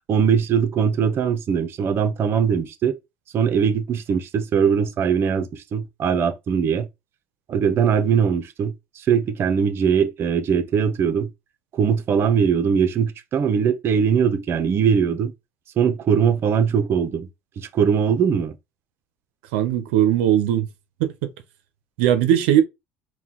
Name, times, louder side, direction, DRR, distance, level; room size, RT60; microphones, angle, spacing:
voice 1, 0.1-3.0 3.3-6.9 7.5-11.3 11.7-15.3 15.8-17.3 17.6-18.5, right 7 dB, 45° right, 0.7 m, -21 dB
voice 2, 19.5-20.7 21.0-21.1 22.0-22.6, right 11 dB, 90° right, 0.6 m, -18 dB
4.4 x 2.2 x 3.6 m
supercardioid pair, 110°, 6 cm